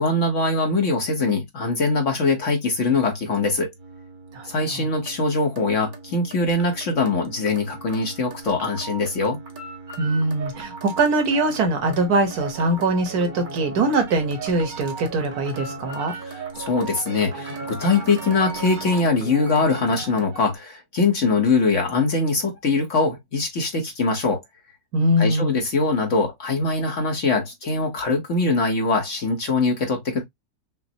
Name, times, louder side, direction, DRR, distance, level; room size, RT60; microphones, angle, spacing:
voice 1, 0.0-3.7 4.4-9.4 16.2-24.4 25.2-30.2, left 3 dB, 50° left, 1.1 m, -22 dB
sound 1, 3.2-20.5, right 3 dB, 40° right, 0.7 m, -37 dB
voice 2, 4.3-4.9 10.0-16.1 24.9-25.6, right 2 dB, 60° right, 1.5 m, -22 dB
6.0 x 2.0 x 2.7 m
omnidirectional pair, 1.9 m